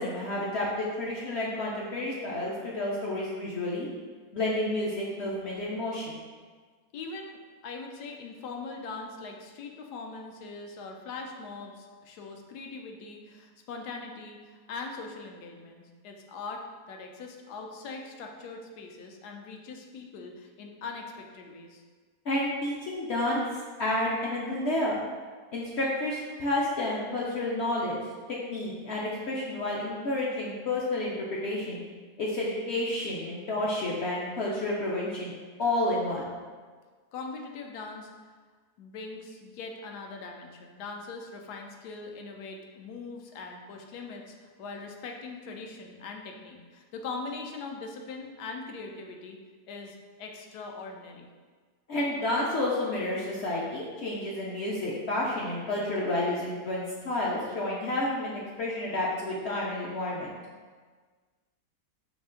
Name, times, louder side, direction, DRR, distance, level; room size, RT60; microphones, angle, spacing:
voice 1, 0.0-3.9 4.3-6.2 22.3-25.0 25.5-28.0 28.5-31.8 32.2-35.3 35.6-36.3 51.9-60.3, left 1 dB, 65° left, -5 dB, 0.7 m, -30 dB
voice 2, 6.9-21.8 37.1-38.1 38.8-49.4 49.7-51.3, left 4 dB, 80° left, 2 dB, 1.1 m, -41 dB
5.1 x 2.4 x 3.7 m, 1.5 s
omnidirectional pair, 1.7 m